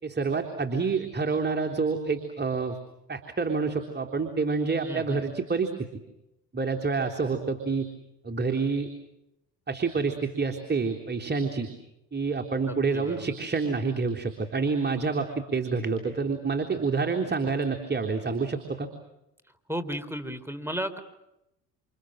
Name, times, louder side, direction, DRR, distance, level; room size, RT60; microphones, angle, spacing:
voice 1, 0.0-2.8 3.1-5.7 6.5-7.9 8.2-8.9 9.7-11.7 12.1-18.9, right 4 dB, 30° right, 3 dB, 3.6 m, -28 dB
voice 2, 4.9-5.4 12.7-13.3 19.7-21.0, equal, 5° right, 10 dB, 3.9 m, -34 dB
29.0 x 28.0 x 6.5 m, 0.88 s
hypercardioid pair, 65°, 35 cm